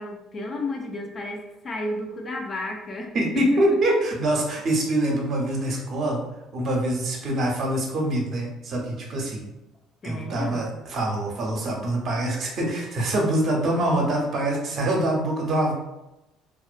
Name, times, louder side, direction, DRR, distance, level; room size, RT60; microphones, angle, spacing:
voice 1, 0.0-3.6 10.0-10.7, left 2 dB, 35° left, 2 dB, 0.4 m, -32 dB
voice 2, 3.1-6.2 6.5-9.5 10.0-15.7, right 1 dB, 55° right, 0 dB, 0.7 m, -24 dB
2.4 x 2.1 x 2.4 m, 0.95 s
supercardioid pair, 80°, 0 cm